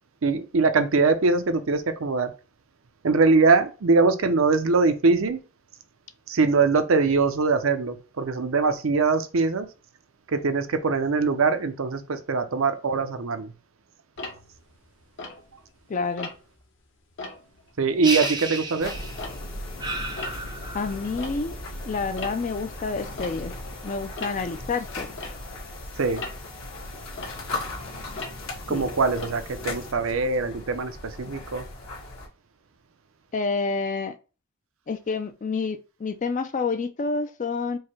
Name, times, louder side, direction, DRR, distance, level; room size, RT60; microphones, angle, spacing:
voice 1, 0.2-2.3 3.0-5.4 6.3-9.7 10.3-13.5 17.8-18.9 26.0-26.2 28.7-31.7, right 4 dB, 65° right, 0.6 m, -22 dB
Tick-tock, 14.2-15.8 16.2-16.6 17.0-19.8 20.0-30.1, left 3 dB, 55° left, 0.9 m, -41 dB
voice 2, 15.9-16.3 20.7-21.6 21.8-23.5 23.8-25.1 28.7-28.8 33.3-34.2 34.9-37.8, left 4 dB, 35° left, 0.4 m, -28 dB
sound 1, 18.0-19.4 19.8-21.1, right 3 dB, 20° right, 0.6 m, -32 dB
sound 2, 18.8-32.3, left 2 dB, 75° left, 1.6 m, -37 dB
4.7 x 2.1 x 4.5 m
head